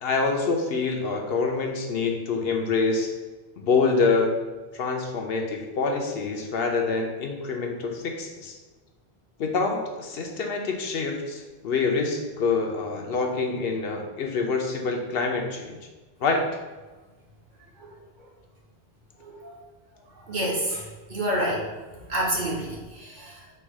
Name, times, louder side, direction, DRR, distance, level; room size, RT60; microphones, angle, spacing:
voice 1, 0.0-3.1 3.6-4.3 4.7-8.6 9.4-15.8 16.2-16.4, left 4 dB, 70° left, 2 dB, 0.9 m, -26 dB
voice 2, 19.2-19.5 20.1-21.7 22.0-23.4, right 1 dB, 50° right, -3 dB, 1.1 m, -29 dB
4.4 x 2.4 x 4.6 m, 1.2 s
omnidirectional pair, 1.1 m